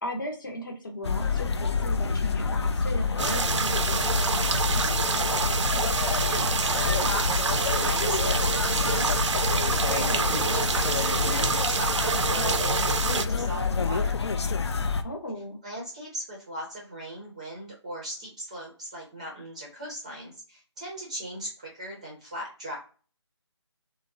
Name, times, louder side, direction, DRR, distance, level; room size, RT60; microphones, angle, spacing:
voice 1, 0.0-5.1 9.9-10.3 15.0-15.6, left 1 dB, 45° left, 3 dB, 0.8 m, -37 dB
sound 1, 1.0-15.0, left 5 dB, 65° left, 0.4 m, -27 dB
sound 2, 3.2-13.3, right 5 dB, 75° right, 0.4 m, -27 dB
voice 2, 6.2-13.0 13.3-14.2 15.6-22.8, equal, 15° right, -2 dB, 0.5 m, -38 dB
3.4 x 2.0 x 2.5 m, 0.37 s
figure-of-eight pair, 165°, 15 cm